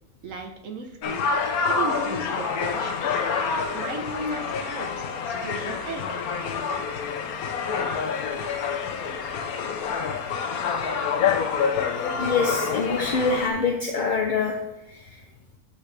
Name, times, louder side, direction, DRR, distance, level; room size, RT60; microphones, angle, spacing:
voice 1, 0.2-1.2 1.7-3.2 3.7-6.0, right 2 dB, 65° right, 4 dB, 1.4 m, -35 dB
sound 1, 1.0-13.5, left 5 dB, 90° left, 1.2 m, -27 dB
voice 2, 12.2-14.6 14.9-15.0, left 4 dB, 45° left, 2 dB, 0.6 m, -25 dB
12.5 x 4.2 x 3.3 m, 0.86 s
omnidirectional pair, 1.5 m